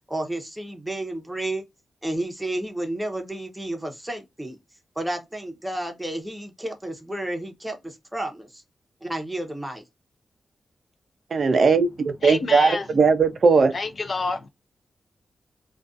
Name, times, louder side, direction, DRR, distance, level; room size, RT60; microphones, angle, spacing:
voice 1, 0.1-1.6 2.0-4.6 5.0-8.6 9.0-9.8, right 1 dB, 5° right, 0.7 m, -31 dB
voice 2, 11.3-11.9 12.2-13.7, right 4 dB, 55° right, 0.3 m, -18 dB
voice 3, 12.2-12.9 13.7-14.5, left 3 dB, 45° left, 0.3 m, -28 dB
2.4 x 2.2 x 2.4 m
wide cardioid pair, 140°, 0 cm